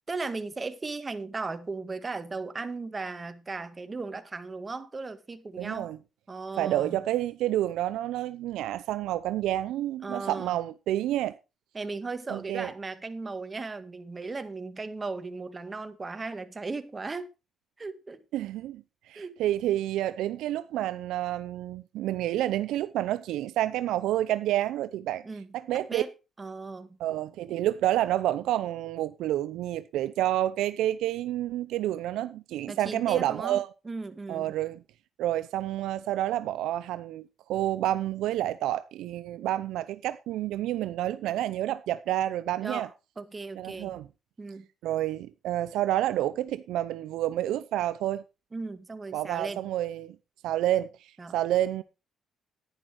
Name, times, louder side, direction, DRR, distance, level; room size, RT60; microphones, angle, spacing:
voice 1, 0.1-5.9 6.3-7.0 10.0-10.6 11.7-17.3 17.8-18.2 19.1-19.4 25.2-25.5 25.9-26.1 26.4-27.0 32.7-34.5 42.6-44.0 44.4-44.7 48.5-49.7 51.2-51.4, right 3 dB, 25° right, 1.8 m, -37 dB
voice 2, 5.6-6.0 6.6-11.3 12.3-12.7 18.3-18.8 19.1-25.2 25.5-26.0 27.0-33.7 34.3-34.8 35.2-42.9 43.6-44.1 44.8-48.2 49.1-50.2 50.4-50.9 51.3-51.8, right 13 dB, 85° right, 0.6 m, -29 dB
10.5 x 10.5 x 4.5 m
cardioid pair, 90°, 0 cm